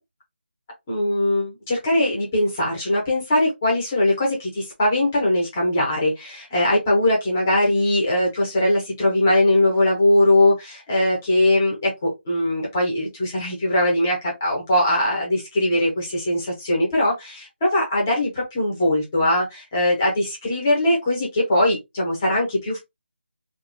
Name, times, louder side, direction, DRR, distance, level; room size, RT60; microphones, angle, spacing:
voice 1, 0.9-22.8, left 1 dB, 10° left, 0.5 m, -21 dB
2.4 x 2.2 x 2.4 m
figure-of-eight pair, 175°, 6 cm